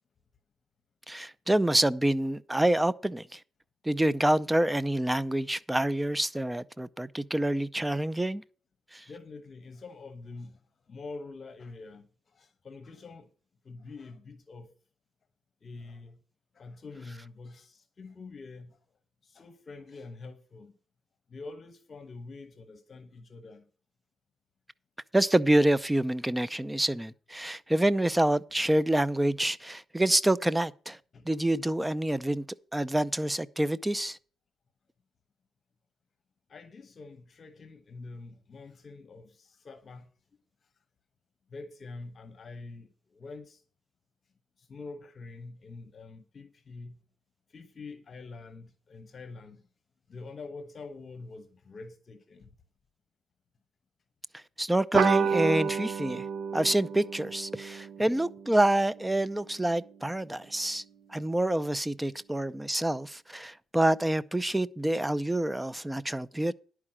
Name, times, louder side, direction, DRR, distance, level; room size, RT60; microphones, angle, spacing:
voice 1, 1.1-3.4 3.8-8.4 8.9-9.0 25.1-31.0 31.2-32.5 32.7-34.2 54.3-56.3 56.5-60.8 61.1-66.5, right 1 dB, 10° right, 0.5 m, -27 dB
voice 2, 9.1-13.3 13.6-14.7 15.6-16.2 16.5-18.8 19.2-20.7 21.3-23.7 31.1-31.3 36.5-40.1 41.5-43.6 44.6-47.0 47.5-49.6 50.1-52.5, left 3 dB, 45° left, 1.0 m, -46 dB
sound 1, 54.9-59.9, right 6 dB, 70° right, 0.9 m, -31 dB
11.0 x 4.8 x 7.5 m
cardioid pair, 90°, 0 cm